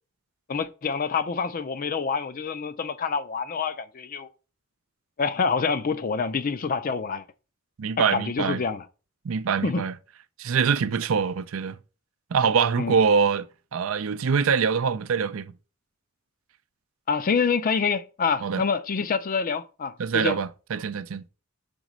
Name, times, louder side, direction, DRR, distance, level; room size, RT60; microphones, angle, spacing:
voice 1, 0.5-4.3 5.2-7.2 8.0-8.8 9.6-9.8 12.8-13.0 17.1-20.4, left 5 dB, 45° left, 0.5 m, -27 dB
voice 2, 7.8-8.6 9.2-9.9 10.4-11.8 12.3-13.5 13.7-15.5 18.4-18.6 20.0-21.2, right 6 dB, 80° right, 0.5 m, -24 dB
5.3 x 4.0 x 6.0 m
head